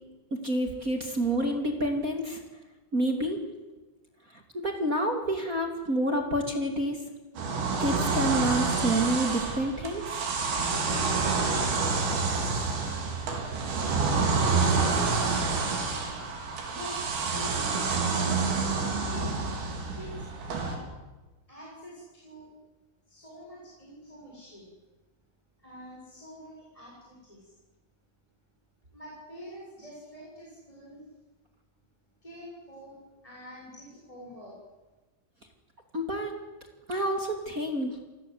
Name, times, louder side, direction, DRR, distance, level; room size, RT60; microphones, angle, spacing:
voice 1, 0.4-2.4 2.9-3.4 4.5-7.0 7.8-10.0 35.9-36.3 36.9-37.9, right 1 dB, 30° right, 3 dB, 1.8 m, -28 dB
sound 1, 7.4-20.8, right 4 dB, 65° right, 6.0 m, -28 dB
voice 2, 16.4-17.6 18.4-18.7 19.0-19.3 19.9-20.9 21.5-22.5 23.1-24.8 25.6-27.6 28.9-31.0 32.2-34.5, equal, 5° left, -4 dB, 6.6 m, -46 dB
28.0 x 20.5 x 8.0 m, 1.2 s
omnidirectional pair, 5.6 m